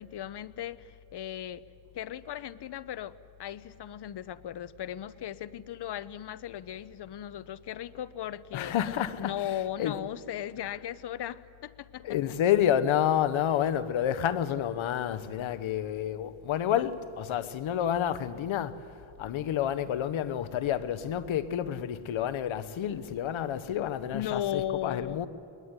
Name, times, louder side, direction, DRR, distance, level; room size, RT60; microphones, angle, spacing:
voice 1, 0.0-1.6 1.9-8.7 9.2-12.1 24.1-25.2, left 11 dB, 55° left, 0.8 m, -37 dB
voice 2, 8.5-10.0 12.0-25.3, left 10 dB, 70° left, 1.1 m, -29 dB
21.0 x 20.5 x 9.7 m
cardioid pair, 100°, 49 cm